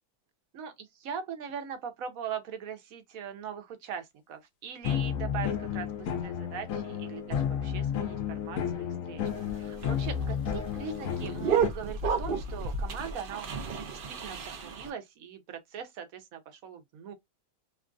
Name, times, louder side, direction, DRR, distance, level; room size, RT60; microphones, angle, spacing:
voice 1, 0.5-17.1, right 7 dB, 75° right, 1.1 m, -41 dB
sound 1, 4.8-11.7, left 8 dB, 75° left, 1.0 m, -32 dB
sound 2, 9.3-14.9, right 5 dB, 50° right, 0.7 m, -32 dB
3.0 x 2.4 x 2.4 m
omnidirectional pair, 1.5 m